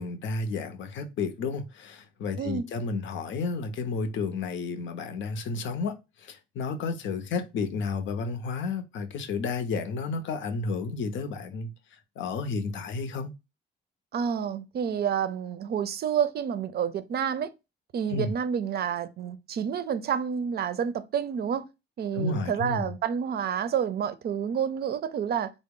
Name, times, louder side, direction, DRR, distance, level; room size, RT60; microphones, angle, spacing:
voice 1, 0.0-11.7 12.2-13.3 18.1-18.3 22.1-22.9, left 4 dB, 70° left, 0.6 m, -32 dB
voice 2, 14.1-17.5 17.9-21.7 22.0-25.5, right 8 dB, 55° right, 0.5 m, -29 dB
3.8 x 2.0 x 3.6 m
cardioid pair, 90°, 20 cm